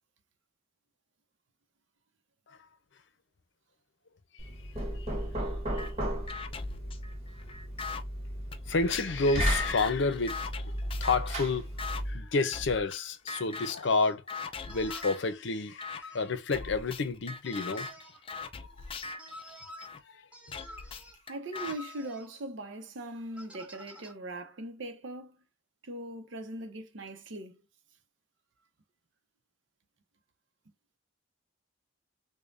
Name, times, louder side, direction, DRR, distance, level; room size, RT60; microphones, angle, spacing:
Knock, 4.4-12.3, equal, 35° right, 1.2 m, -35 dB
sound 1, 5.8-5.9 6.3-8.0 8.5-11.3 11.8-12.0 12.5-13.0 13.3-13.9 14.3-15.3 15.8-16.0 16.5-20.0 20.5-21.8, left 4 dB, 30° left, 0.4 m, -41 dB
voice 1, 8.7-17.9 18.6-18.7 20.0-20.6, left 3 dB, 65° left, 0.6 m, -30 dB
sound 2, 13.3-13.4 13.8-14.2 14.7-15.2 16.0-16.3 17.4-18.2 19.2-19.9 20.3-21.2 21.5-22.3 23.4-24.1, left 1 dB, 5° right, 0.7 m, -49 dB
voice 2, 21.3-25.4 25.8-27.6, right 1 dB, 70° right, 0.7 m, -40 dB
5.1 x 2.2 x 2.5 m
head